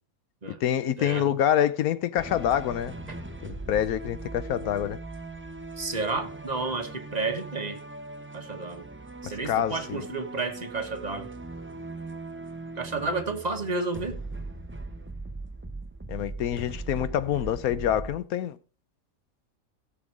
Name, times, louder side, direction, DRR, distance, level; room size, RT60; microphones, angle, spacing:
voice 1, 0.6-3.0 3.4-5.0 9.2-10.0 16.1-18.6, left 10 dB, 85° left, 1.2 m, -26 dB
sound 1, 2.2-18.2, right 2 dB, 10° right, 0.6 m, -40 dB
voice 2, 5.8-7.8 8.3-8.8 9.2-11.3 12.8-14.2, right 3 dB, 30° right, 1.4 m, -31 dB
16.0 x 6.4 x 4.7 m
omnidirectional pair, 1.5 m